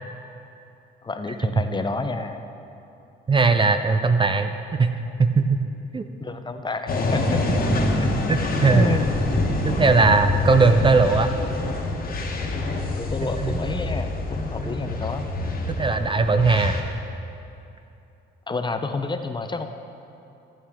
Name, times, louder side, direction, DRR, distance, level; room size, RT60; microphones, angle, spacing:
voice 1, 1.0-2.4 6.2-7.4 7.7-8.3 8.7-9.0 9.8-9.9 12.9-15.3 18.5-19.7, left 3 dB, 25° left, 7 dB, 0.6 m, -29 dB
voice 2, 3.3-4.9 5.2-5.6 5.9-6.0 7.5-7.6 8.3-8.9 9.6-11.3 13.4-13.5 15.8-16.8, right 4 dB, 25° right, 8 dB, 0.5 m, -19 dB
sound 1, 6.9-16.8, left 2 dB, 45° left, 1.3 m, -26 dB
14.0 x 8.5 x 3.6 m, 2.8 s
cardioid pair, 90°, 20 cm